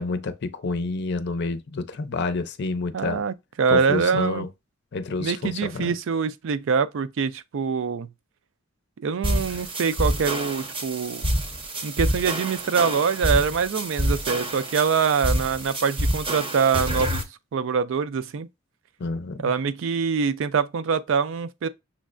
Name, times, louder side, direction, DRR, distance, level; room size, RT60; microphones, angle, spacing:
voice 1, 0.0-3.2 3.7-4.5 4.9-5.9 19.0-19.4, left 3 dB, 55° left, 0.5 m, -28 dB
voice 2, 2.9-4.5 5.2-8.1 9.0-11.2 11.8-17.2 17.5-18.5 19.4-21.7, right 6 dB, 65° right, 0.4 m, -24 dB
sound 1, 9.2-17.2, equal, 25° right, 0.7 m, -27 dB
6.3 x 3.1 x 2.5 m
head